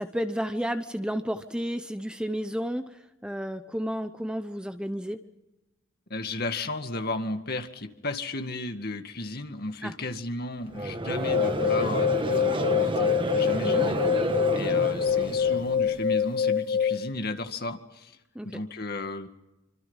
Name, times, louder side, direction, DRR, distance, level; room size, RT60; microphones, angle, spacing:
voice 1, 0.0-5.2 9.8-9.9 13.6-13.9 18.3-18.6, equal, 5° right, 8 dB, 0.8 m, -32 dB
voice 2, 6.1-14.0 14.3-18.2 18.4-19.3, left 2 dB, 50° left, 6 dB, 2.0 m, -34 dB
Conversation / Crowd, 10.7-16.0, right 1 dB, 25° right, 1.3 m, -30 dB
sound 1, 11.1-17.1, left 7 dB, 70° left, 1.4 m, -25 dB
26.5 x 25.5 x 5.6 m, 0.98 s
head